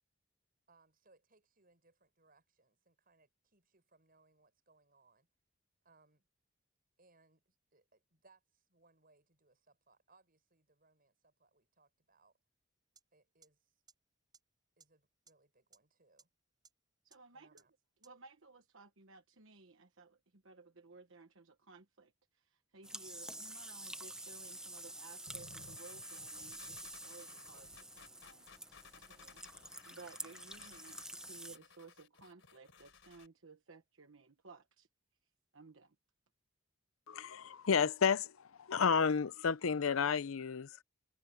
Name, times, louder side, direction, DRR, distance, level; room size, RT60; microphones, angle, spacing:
voice 1, 0.7-5.3 5.8-6.3 7.0-12.3 13.1-13.7 14.8-16.3 17.3-17.7, right 3 dB, 45° right, 7.4 m, -70 dB
sound 1, 13.0-13.1 13.4-13.5 13.9-14.0 14.3-14.4 14.8-14.9 15.3-15.4 15.7-15.8 16.2-16.3 16.6-16.7 17.1-17.2 17.6-17.7 18.0-18.1, right 5 dB, 20° right, 6.3 m, -61 dB
voice 2, 17.0-17.6 18.0-28.5 28.9-34.9 35.5-35.9, right 4 dB, 70° right, 1.2 m, -58 dB
sound 2, 22.8-31.6, right 1 dB, 5° right, 0.7 m, -48 dB
sound 3, 25.3-33.3, left 5 dB, 65° left, 4.1 m, -59 dB
voice 3, 37.1-38.3 38.6-40.8, left 6 dB, 85° left, 0.6 m, -31 dB
head